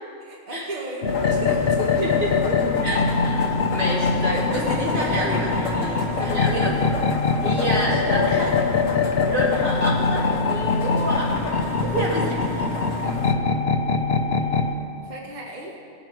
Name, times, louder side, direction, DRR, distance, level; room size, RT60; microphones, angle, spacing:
voice 1, 0.2-2.1 2.5-2.6 7.7-8.0 15.0-15.7, right 2 dB, 35° right, -2 dB, 1.4 m, -34 dB
sound 1, 1.0-14.7, left 4 dB, 55° left, 1.0 m, -23 dB
sound 2, 1.1-13.3, left 4 dB, 70° left, 1.4 m, -31 dB
voice 2, 2.8-6.9 7.4-8.6 9.2-12.8, right 1 dB, 80° right, -6 dB, 3.2 m, -28 dB
19.0 x 7.1 x 4.5 m, 2.5 s
omnidirectional pair, 1.4 m